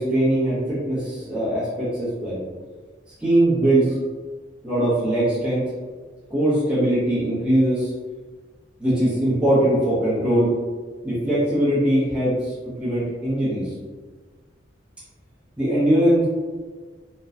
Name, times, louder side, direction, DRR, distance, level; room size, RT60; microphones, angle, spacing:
voice 1, 0.0-2.4 3.2-4.0 4.6-5.6 6.3-7.9 8.8-10.5 11.0-13.7 15.6-16.3, right 1 dB, 5° right, -12 dB, 0.8 m, -21 dB
3.0 x 2.1 x 2.4 m, 1.4 s
head